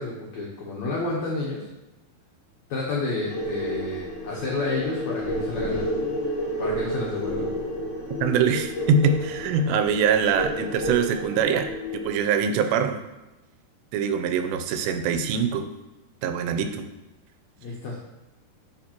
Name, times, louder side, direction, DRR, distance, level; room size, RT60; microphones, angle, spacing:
voice 1, 0.0-1.6 2.7-5.9 6.6-7.6 17.6-18.0, left 3 dB, 90° left, -4 dB, 1.6 m, -30 dB
sound 1, 3.3-12.2, equal, 60° left, 1.1 m, -31 dB
voice 2, 8.2-11.7 11.9-13.0 13.9-15.7 16.2-16.9, right 6 dB, 90° right, 7 dB, 2.8 m, -23 dB
10.0 x 4.6 x 2.9 m, 1.0 s
omnidirectional pair, 4.8 m